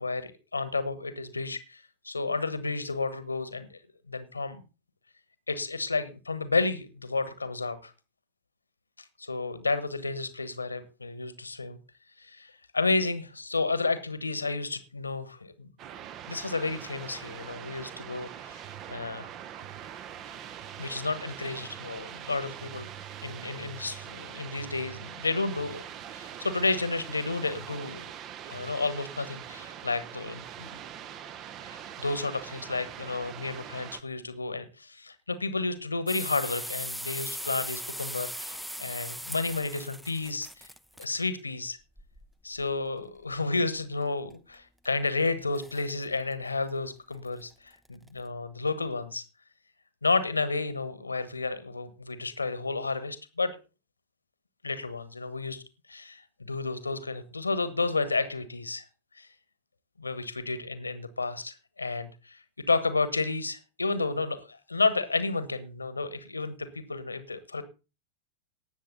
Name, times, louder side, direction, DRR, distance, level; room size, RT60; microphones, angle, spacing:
voice 1, 0.0-3.8 4.1-4.6 5.5-7.9 9.2-11.8 12.2-15.7 16.3-18.6 18.9-19.3 20.8-22.9 23.2-25.8 26.1-28.0 28.5-30.7 31.6-40.7 41.0-41.8 42.4-49.2 50.0-53.5 54.6-55.6 55.9-58.8 59.2-59.3 60.0-67.6, left 3 dB, 80° left, 13 dB, 1.2 m, -31 dB
sound 1, 15.8-34.0, right 10 dB, 35° right, 0.9 m, -43 dB
sound 2, 36.1-41.0 42.0-42.7 44.3-44.4 44.8-45.3 45.5-45.9 46.3-46.4 46.7-46.8 47.3-47.4 47.8-48.1, equal, ahead, 0.6 m, -39 dB
18.5 x 7.4 x 3.9 m, 0.31 s
figure-of-eight pair, 90°, 0 cm